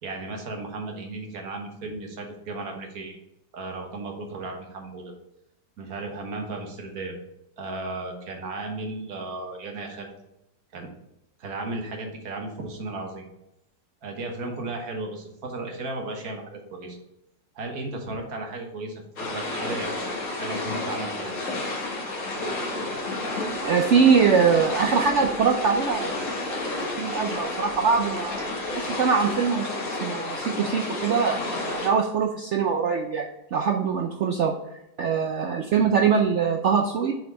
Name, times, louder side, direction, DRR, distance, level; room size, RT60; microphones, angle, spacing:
voice 1, 0.0-3.2 3.5-5.1 5.8-7.1 7.6-10.1 10.7-10.9 11.4-13.3 14.0-17.0 17.5-21.4, right 2 dB, 55° right, 3 dB, 1.6 m, -35 dB
sound 1, 19.2-31.9, left 2 dB, 45° left, 1.8 m, -31 dB
voice 2, 23.3-26.1 26.5-26.6 27.0-33.3 33.5-34.5 35.0-37.1, right 6 dB, 85° right, 3 dB, 0.6 m, -23 dB
6.8 x 4.4 x 4.0 m, 0.87 s
omnidirectional pair, 2.0 m